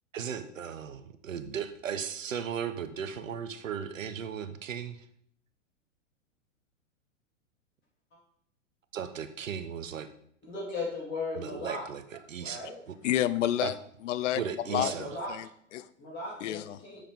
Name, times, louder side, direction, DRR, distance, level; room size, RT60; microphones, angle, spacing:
voice 1, 0.1-5.0 8.9-10.1 11.3-12.6 12.9-13.0 13.6-13.7 14.3-15.2, right 7 dB, 80° right, 11 dB, 1.1 m, -36 dB
voice 2, 10.4-11.8 12.4-12.8 14.7-15.3 16.0-17.0, left 2 dB, 30° left, -4 dB, 3.6 m, -37 dB
voice 3, 13.0-13.8 14.0-14.4 14.7-14.9 15.3-15.9 16.4-16.8, left 13 dB, 65° left, 16 dB, 0.7 m, -29 dB
7.7 x 6.9 x 5.3 m, 0.67 s
hypercardioid pair, 110°, 39 cm